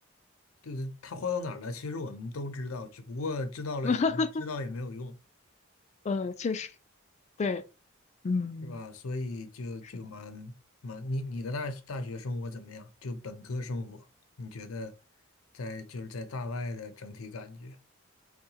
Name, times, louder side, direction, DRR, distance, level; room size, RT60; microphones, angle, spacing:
voice 1, 0.6-5.2 8.6-10.5 10.8-14.0 14.4-14.9 15.5-17.8, left 2 dB, 85° left, 0.6 m, -36 dB
voice 2, 3.8-4.4 6.0-6.7 7.4-7.6 8.2-8.8, left 4 dB, 35° left, 0.3 m, -29 dB
4.6 x 2.2 x 2.8 m
head